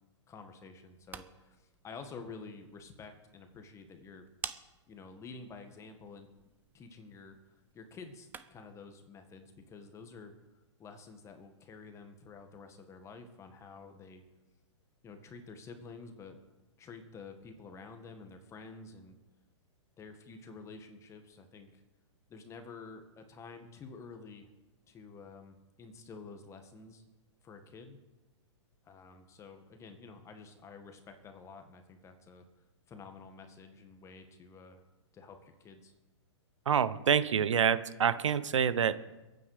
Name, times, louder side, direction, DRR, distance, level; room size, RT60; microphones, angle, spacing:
voice 1, 0.3-4.3 4.9-6.3 6.7-10.3 10.8-14.2 15.0-16.4 16.8-19.2 20.0-21.8 22.3-24.5 24.9-27.0 27.4-28.0 28.8-32.5 32.9-34.8 35.1-35.9, left 4 dB, 20° left, 6 dB, 1.9 m, -50 dB
sound 1, 0.8-8.8, right 6 dB, 10° right, 0.7 m, -51 dB
voice 2, 36.7-39.0, right 7 dB, 80° right, 15 dB, 0.9 m, -27 dB
22.5 x 9.3 x 5.1 m, 1.1 s
hypercardioid pair, 130°, 15 cm